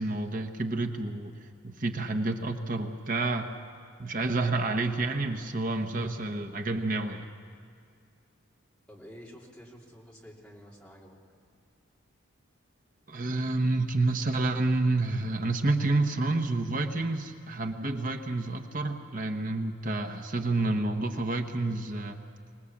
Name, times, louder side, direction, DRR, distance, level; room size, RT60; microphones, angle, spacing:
voice 1, 0.0-1.3 1.6-3.5 4.0-7.3 13.1-22.2, right 2 dB, 40° right, 4 dB, 1.1 m, -29 dB
voice 2, 8.9-11.2, equal, 5° left, -4 dB, 3.3 m, -49 dB
25.5 x 20.0 x 7.2 m, 2.4 s
head